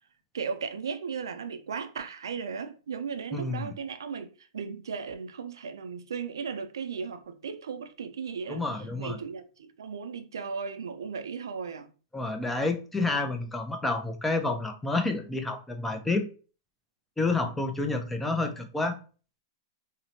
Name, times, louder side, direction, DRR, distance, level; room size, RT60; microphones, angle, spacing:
voice 1, 0.3-8.6 9.0-11.9, right 6 dB, 85° right, 0.3 m, -36 dB
voice 2, 3.3-3.7 8.5-9.2 12.1-16.3 17.2-19.0, left 3 dB, 10° left, 0.4 m, -29 dB
2.8 x 2.0 x 2.7 m
hypercardioid pair, 115°, 2 cm